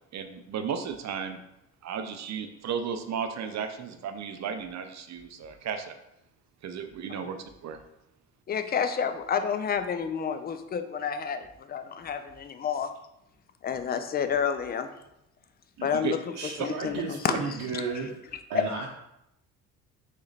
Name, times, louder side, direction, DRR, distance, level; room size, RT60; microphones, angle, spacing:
voice 1, 0.1-1.4 1.8-6.0 6.6-7.8 15.8-16.2 16.6-16.7, right 7 dB, 40° right, 7 dB, 0.6 m, -34 dB
voice 2, 8.5-12.9 13.6-14.9 15.8-16.2 16.6-17.3, left 7 dB, 20° left, 8 dB, 0.4 m, -29 dB
voice 3, 16.4-18.1 18.5-18.9, right 4 dB, 55° right, -4 dB, 0.9 m, -33 dB
4.0 x 2.9 x 4.0 m, 0.84 s
figure-of-eight pair, 50°, 46 cm